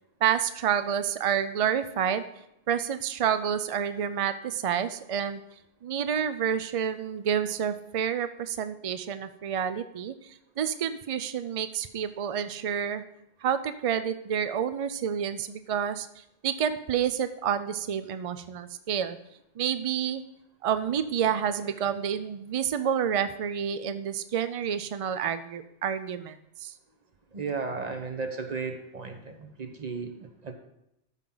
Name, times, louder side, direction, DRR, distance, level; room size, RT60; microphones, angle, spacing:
voice 1, 0.2-2.2 2.7-5.4 5.8-13.0 13.4-19.2 19.6-20.2 20.6-26.7, right 8 dB, 65° right, 11 dB, 0.3 m, -29 dB
voice 2, 27.3-30.5, right 4 dB, 40° right, 5 dB, 1.1 m, -35 dB
13.5 x 5.7 x 3.8 m, 0.81 s
omnidirectional pair, 1.1 m